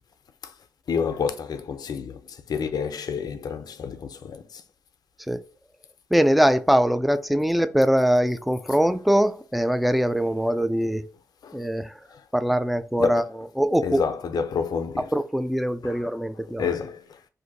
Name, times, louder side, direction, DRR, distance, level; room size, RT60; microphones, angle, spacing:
voice 1, 0.9-4.6 11.4-11.6 12.1-12.2 13.0-13.2 13.8-15.1 15.8-16.0 16.6-17.2, left 6 dB, 80° left, 0.5 m, -29 dB
voice 2, 6.1-11.1 11.5-12.0 12.3-14.0 15.1-16.7, equal, ahead, 0.3 m, -22 dB
2.6 x 2.5 x 3.9 m
cardioid pair, 55°, 7 cm